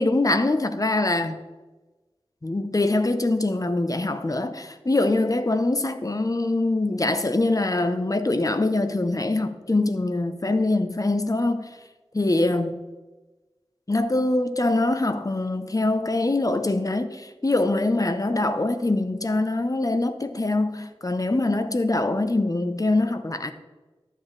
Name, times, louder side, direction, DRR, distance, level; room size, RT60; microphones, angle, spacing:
voice 1, 0.0-1.5 2.4-11.7 12.1-12.8 13.9-23.5, left 2 dB, 35° left, 0.7 m, -23 dB
12.0 x 7.4 x 3.3 m
wide cardioid pair, 50°, 10 cm